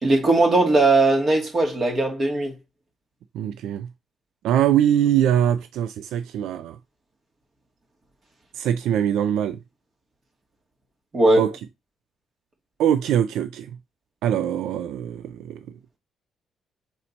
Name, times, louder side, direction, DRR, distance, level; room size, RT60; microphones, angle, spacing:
voice 1, 0.0-2.5 11.1-11.5, right 2 dB, 40° right, 2.5 m, -19 dB
voice 2, 3.3-3.9 4.4-6.8 8.5-9.6 11.4-11.5 12.8-13.7 14.2-15.6, right 10 dB, 85° right, 0.3 m, -22 dB
5.4 x 4.3 x 4.2 m
cardioid pair, 90°, 0 cm